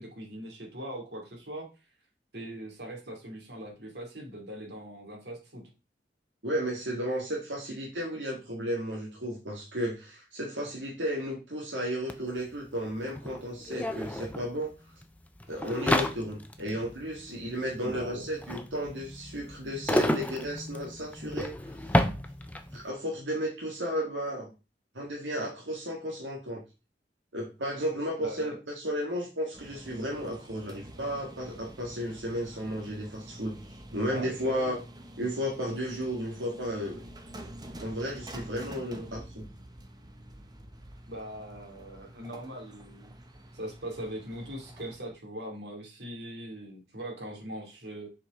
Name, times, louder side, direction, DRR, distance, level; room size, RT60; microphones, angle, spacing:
voice 1, 0.0-1.7 2.3-5.6 17.8-18.3 28.2-28.6 34.1-34.8 41.1-43.1 43.5-48.1, right 1 dB, 65° right, 0 dB, 2.5 m, -41 dB
voice 2, 6.4-14.7 15.5-22.0 22.7-24.5 24.9-26.6 27.3-34.8 35.2-37.0 37.8-39.4, equal, 90° right, -2 dB, 1.8 m, -34 dB
sound 1, 12.1-12.2 12.4-22.8, left 1 dB, 10° left, 0.6 m, -32 dB
sound 2, 29.5-45.0, right 1 dB, 25° right, 0.9 m, -47 dB
7.0 x 4.8 x 3.7 m, 0.30 s
head